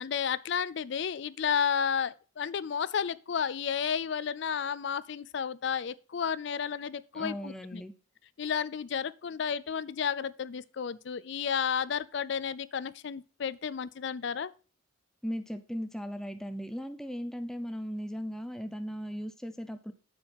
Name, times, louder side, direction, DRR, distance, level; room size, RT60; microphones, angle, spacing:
voice 1, 0.0-7.8 8.4-14.5, left 7 dB, 55° left, 0.4 m, -32 dB
voice 2, 7.1-7.9 15.2-19.9, equal, ahead, 0.5 m, -37 dB
8.4 x 7.2 x 3.4 m
head